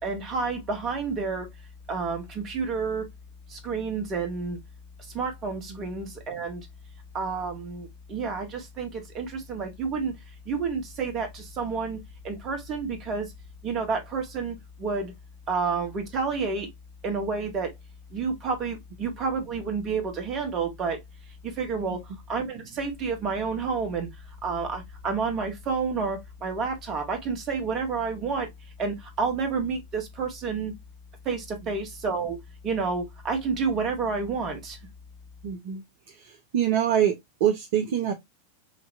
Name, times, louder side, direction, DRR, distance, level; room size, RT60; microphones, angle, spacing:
voice 1, 0.0-1.5 1.9-3.1 3.5-4.6 5.1-6.7 7.1-10.1 10.4-12.0 12.2-13.3 13.6-15.1 15.5-16.7 17.0-17.7 18.1-21.0 21.4-22.0 22.3-24.1 24.4-28.5 28.8-30.7 31.2-32.4 32.6-34.8, right 5 dB, 30° right, 1.7 m, -29 dB
voice 2, 35.4-35.8 36.2-38.1, right 10 dB, 50° right, 0.8 m, -25 dB
6.0 x 2.8 x 2.7 m
figure-of-eight pair, 90°, 0 cm